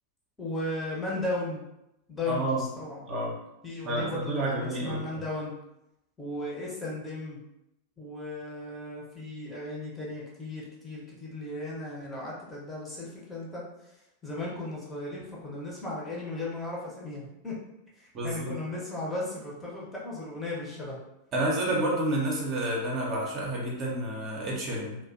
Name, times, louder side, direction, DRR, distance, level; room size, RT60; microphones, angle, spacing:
voice 1, 0.4-1.6 2.1-3.0 3.6-5.5 6.2-7.4 8.0-13.6 14.2-17.6 18.0-21.0, left 2 dB, 10° left, -5 dB, 0.7 m, -36 dB
voice 2, 2.3-2.6 3.1-3.4 3.8-5.2 18.1-18.6 21.3-25.0, right 1 dB, 35° right, -3 dB, 0.6 m, -29 dB
2.5 x 2.1 x 2.4 m, 0.87 s
figure-of-eight pair, 90°, 0 cm